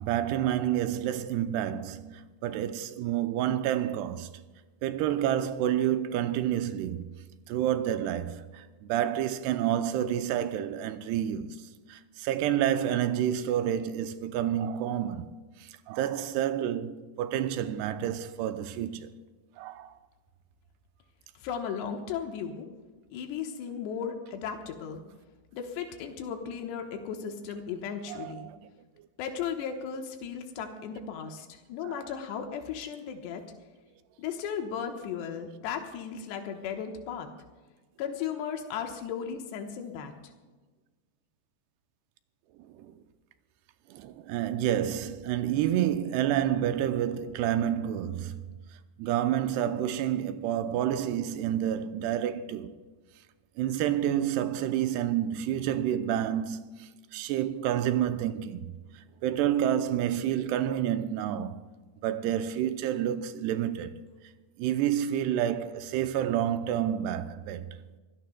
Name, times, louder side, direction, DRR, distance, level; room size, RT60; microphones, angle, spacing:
voice 1, 0.0-4.3 4.8-7.1 7.5-15.3 15.6-19.1 19.6-19.9 28.1-28.6 31.8-32.0 42.6-43.0 43.9-48.6 49.0-52.8 53.6-58.7 59.2-61.7 62.0-64.0 64.6-67.8, right 11 dB, 85° right, 2.6 m, -29 dB
voice 2, 21.3-22.7 23.1-25.0 25.5-28.5 29.2-33.4 34.2-37.3 38.0-40.1, left 7 dB, 90° left, 3.2 m, -36 dB
25.0 x 17.0 x 2.2 m
omnidirectional pair, 4.8 m